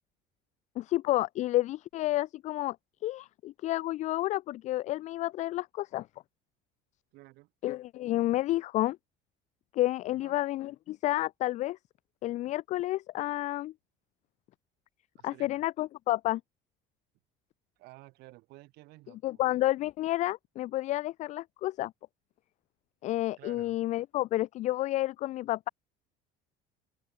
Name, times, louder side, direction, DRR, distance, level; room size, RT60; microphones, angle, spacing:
voice 1, 0.8-2.8 3.0-6.1 7.6-9.0 9.7-11.8 12.2-13.7 15.2-16.4 19.2-21.9 23.0-25.7, left 16 dB, 40° left, 0.6 m, -30 dB
voice 2, 7.1-7.5 10.1-10.4 15.2-15.7 17.8-19.4 23.4-23.8, right 21 dB, 60° right, 6.6 m, -53 dB
open air
cardioid pair, 170°, 18 cm